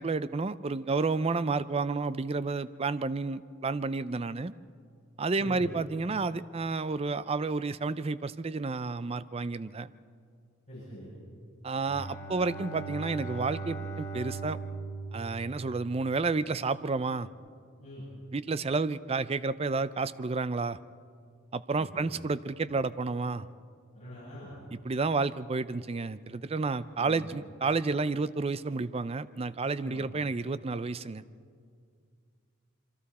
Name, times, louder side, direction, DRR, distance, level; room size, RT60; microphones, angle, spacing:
voice 1, 0.0-4.5 5.2-9.9 11.6-14.6 15.1-17.3 18.3-20.8 21.5-23.5 24.8-31.2, right 4 dB, 30° right, 15 dB, 0.4 m, -31 dB
voice 2, 5.4-5.7 10.7-11.1 17.8-18.1 21.8-22.1 23.9-24.5 27.0-27.3 29.8-30.1, equal, 35° left, -9 dB, 7.9 m, -44 dB
Bowed string instrument, 11.7-16.3, right 3 dB, 15° left, 2.3 m, -39 dB
27.0 x 24.0 x 4.2 m, 2.2 s
head